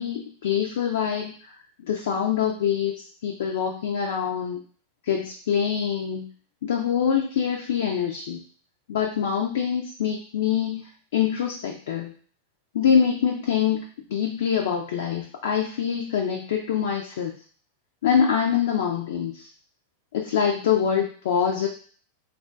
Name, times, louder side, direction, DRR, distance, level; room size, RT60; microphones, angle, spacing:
voice 1, 0.0-1.5 1.8-2.9 3.2-4.6 5.1-6.3 6.6-8.4 8.9-10.9 11.1-12.1 12.7-17.3 18.0-19.5 20.1-21.7, left 8 dB, 60° left, 1 dB, 0.4 m, -25 dB
3.6 x 2.3 x 2.4 m, 0.44 s
figure-of-eight pair, 90°, 0 cm